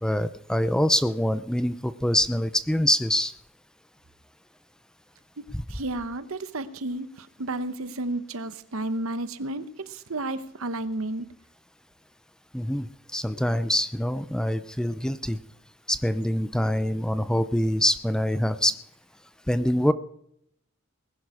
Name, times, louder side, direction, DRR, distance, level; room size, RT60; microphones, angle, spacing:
voice 1, 0.0-3.3 5.5-5.6 12.5-15.4 15.9-18.8 19.5-19.9, left 1 dB, 5° left, 13 dB, 0.5 m, -25 dB
voice 2, 5.7-11.3, right 2 dB, 85° right, 13 dB, 1.0 m, -32 dB
20.0 x 11.0 x 4.9 m, 0.71 s
head